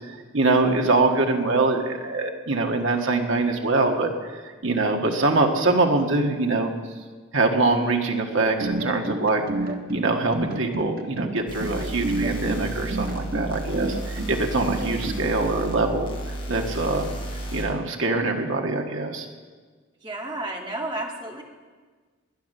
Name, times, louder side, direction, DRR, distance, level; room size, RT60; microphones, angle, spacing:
voice 1, 0.0-4.1 4.6-6.7 7.3-9.5 9.9-16.1 16.5-17.1 17.5-19.3, right 3 dB, 70° right, 2 dB, 1.8 m, -23 dB
sound 1, 8.4-15.2, right 2 dB, 45° right, 1.2 m, -29 dB
sound 2, 11.5-17.6, right 1 dB, 25° left, 3.7 m, -33 dB
voice 2, 20.0-21.4, right 2 dB, 20° right, 0 dB, 1.8 m, -32 dB
20.5 x 9.4 x 6.8 m, 1.5 s
head